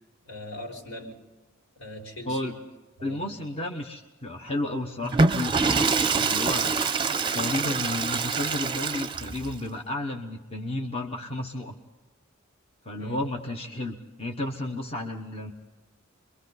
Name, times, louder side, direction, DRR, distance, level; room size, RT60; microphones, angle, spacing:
voice 1, 0.2-1.1 1.8-2.5 3.0-3.2 13.0-13.2, left 1 dB, 75° left, 0 dB, 4.7 m, -40 dB
voice 2, 3.0-6.7 7.3-11.8 12.8-15.5, left 1 dB, 30° left, 2 dB, 1.2 m, -32 dB
Water / Toilet flush, 5.0-9.5, right 4 dB, 25° right, 0.7 m, -25 dB
29.0 x 23.0 x 4.1 m, 1.1 s
head